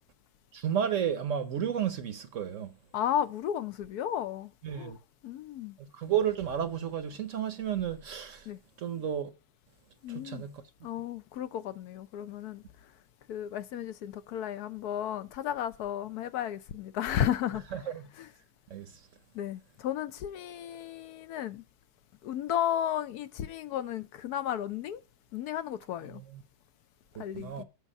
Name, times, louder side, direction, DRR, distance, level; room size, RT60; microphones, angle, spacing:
voice 1, 0.5-2.7 4.6-5.0 5.8-8.5 8.8-9.3 10.1-10.6 17.7-18.1 18.7-18.9 26.1-26.4 27.2-27.6, right 9 dB, 60° right, 1.0 m, -32 dB
voice 2, 2.9-4.9 5.2-5.7 8.5-8.6 10.0-10.4 10.8-12.6 13.3-17.6 18.2-18.3 19.3-21.6 22.2-25.0 25.3-26.2 27.2-27.6, left 10 dB, 70° left, 1.1 m, -33 dB
8.2 x 6.0 x 5.3 m
omnidirectional pair, 1.8 m